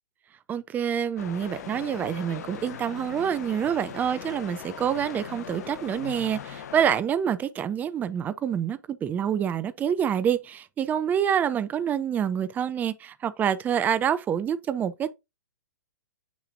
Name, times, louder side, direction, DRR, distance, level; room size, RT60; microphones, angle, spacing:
voice 1, 0.5-15.1, right 8 dB, 15° right, 0.5 m, -27 dB
sound 1, 1.2-7.0, left 9 dB, 60° left, 0.6 m, -40 dB
sound 2, 1.5-6.6, left 2 dB, 5° left, 1.5 m, -50 dB
6.7 x 6.1 x 2.6 m
figure-of-eight pair, 115°, 10 cm